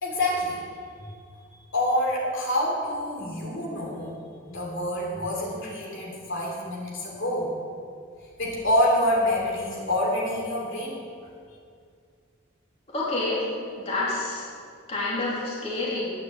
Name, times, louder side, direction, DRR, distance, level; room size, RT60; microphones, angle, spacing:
voice 1, 0.0-0.6 1.0-1.1 1.5-4.2 4.5-7.5 8.4-11.0, left 1 dB, 55° left, -4 dB, 3.1 m, -27 dB
voice 2, 12.9-13.5 13.7-14.5 14.9-16.1, left 2 dB, 30° left, -7 dB, 3.0 m, -28 dB
11.0 x 9.6 x 7.8 m, 2.3 s
head